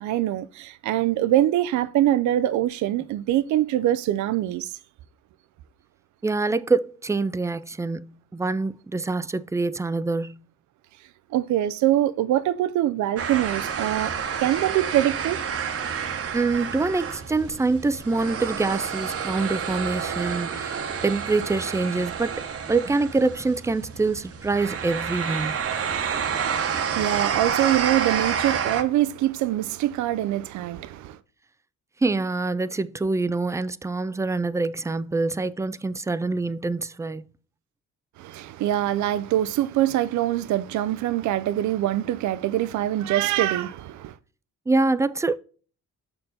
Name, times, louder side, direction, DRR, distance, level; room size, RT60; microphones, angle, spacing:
voice 1, 0.0-4.7 11.3-15.4 26.6-31.2 38.2-44.2, right 13 dB, 75° right, 0.5 m, -24 dB
voice 2, 6.2-10.4 16.3-22.4 22.7-25.5 32.0-37.3 44.7-45.4, right 3 dB, 10° right, 0.3 m, -25 dB
sound 1, 13.2-28.8, right 7 dB, 50° right, 1.0 m, -29 dB
6.5 x 4.5 x 4.0 m
cardioid pair, 90°, 30 cm